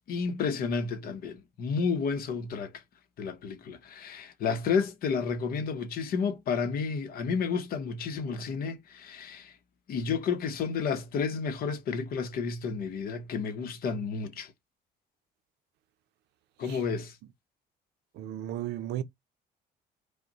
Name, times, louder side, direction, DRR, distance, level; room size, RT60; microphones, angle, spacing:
voice 1, 0.1-2.8 3.2-9.5 9.9-14.5 16.6-17.2, left 5 dB, 60° left, 0.7 m, -31 dB
voice 2, 18.2-19.0, right 12 dB, 80° right, 0.5 m, -34 dB
5.0 x 2.1 x 2.8 m
cardioid pair, 110°, 17 cm